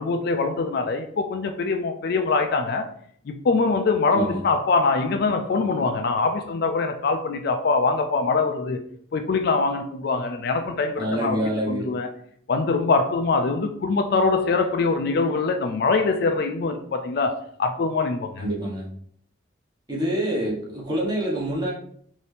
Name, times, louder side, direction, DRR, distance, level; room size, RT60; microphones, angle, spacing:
voice 1, 0.0-2.9 3.3-11.4 11.7-12.1 12.5-18.4, left 4 dB, 55° left, 0.3 m, -23 dB
voice 2, 11.0-11.9 18.4-18.9 19.9-21.7, right 1 dB, 20° right, 1.1 m, -26 dB
4.2 x 2.7 x 3.3 m
head